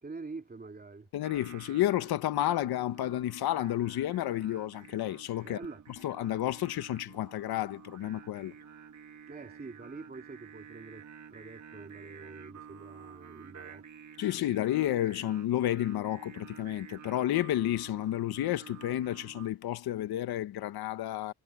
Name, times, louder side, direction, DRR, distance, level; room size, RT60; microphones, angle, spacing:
voice 1, 0.0-1.1 5.4-5.8 9.3-11.0 11.3-14.0, right 3 dB, 25° right, 3.3 m, -45 dB
voice 2, 1.1-5.6 6.0-8.5 14.2-21.3, left 13 dB, 80° left, 1.5 m, -31 dB
Singing, 1.2-19.5, right 7 dB, 50° right, 2.2 m, -51 dB
cardioid pair, 90°, 37 cm